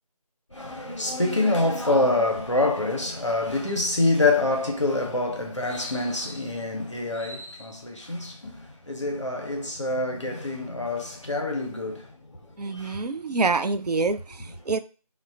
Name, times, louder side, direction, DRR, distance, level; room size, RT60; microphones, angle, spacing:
voice 1, 0.5-12.1 12.6-13.1, left 2 dB, 50° left, 0.6 m, -26 dB
voice 2, 12.6-14.8, right 3 dB, 85° right, 0.4 m, -26 dB
3.1 x 2.1 x 2.5 m
figure-of-eight pair, 175°, 20 cm